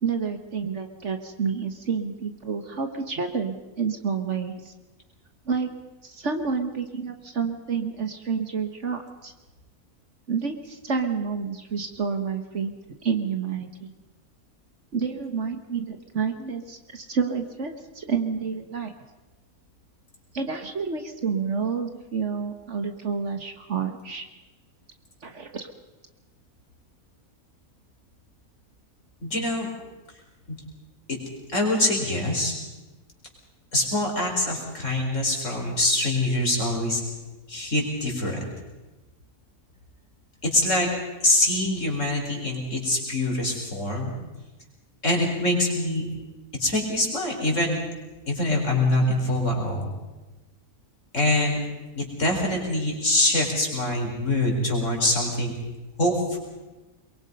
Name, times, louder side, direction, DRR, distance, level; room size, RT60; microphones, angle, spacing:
voice 1, 0.0-4.7 5.4-5.7 6.0-9.3 10.3-12.7 13.0-13.9 14.9-18.9 20.3-24.3 25.2-25.7, right 5 dB, 50° right, 6 dB, 1.7 m, -29 dB
voice 2, 29.2-29.7 31.1-31.2 31.5-32.5 33.7-37.0 37.5-38.4 40.4-40.9 41.2-44.1 45.0-46.1 46.6-47.8 48.3-49.9 51.1-51.6 52.0-55.6 56.0-56.4, left 1 dB, 55° left, 0 dB, 4.8 m, -24 dB
23.0 x 22.5 x 5.4 m, 1.1 s
omnidirectional pair, 1.6 m